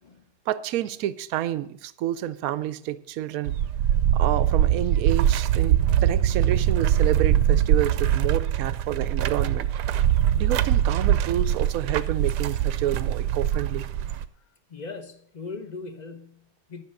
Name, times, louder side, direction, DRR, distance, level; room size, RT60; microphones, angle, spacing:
voice 1, 0.5-3.6 4.1-9.7 10.3-13.8, right 12 dB, 65° right, 1.0 m, -29 dB
sound 1, 3.5-14.3, right 10 dB, 85° right, 1.2 m, -22 dB
voice 2, 14.7-16.8, left 4 dB, 30° left, 0.9 m, -39 dB
11.0 x 6.1 x 7.6 m
omnidirectional pair, 1.8 m